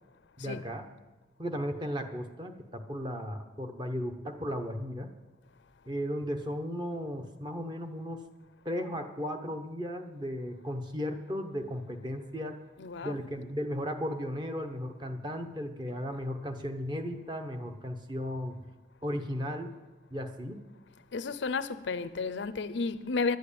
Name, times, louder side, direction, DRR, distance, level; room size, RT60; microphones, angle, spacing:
voice 1, 0.4-0.8 1.4-5.1 5.9-8.3 8.6-12.6 13.0-18.6 19.0-19.8 20.1-20.6, equal, 25° right, 0.9 m, -35 dB
voice 2, 12.8-13.2 21.1-23.4, left 4 dB, 80° left, 0.6 m, -32 dB
11.5 x 7.9 x 8.5 m
head